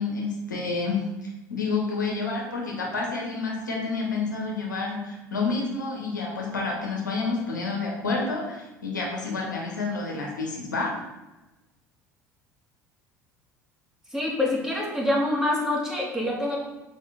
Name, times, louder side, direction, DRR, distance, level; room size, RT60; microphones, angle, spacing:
voice 1, 0.0-10.9, left 3 dB, 85° left, -2 dB, 1.4 m, -29 dB
voice 2, 14.1-16.6, left 1 dB, 5° right, -4 dB, 2.4 m, -26 dB
6.5 x 5.2 x 4.1 m, 1.0 s
figure-of-eight pair, 65°, 10 cm